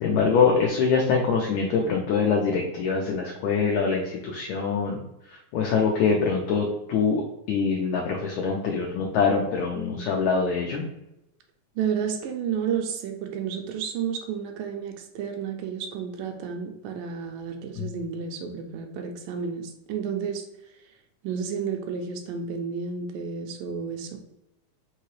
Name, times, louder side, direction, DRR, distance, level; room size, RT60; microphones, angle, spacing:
voice 1, 0.0-5.0 5.5-7.2 7.5-10.8 17.7-17.9, left 5 dB, 90° left, -1 dB, 1.6 m, -24 dB
voice 2, 11.8-20.4 21.2-24.2, right 7 dB, 80° right, 4 dB, 2.1 m, -31 dB
5.5 x 2.9 x 3.0 m, 0.86 s
omnidirectional pair, 4.1 m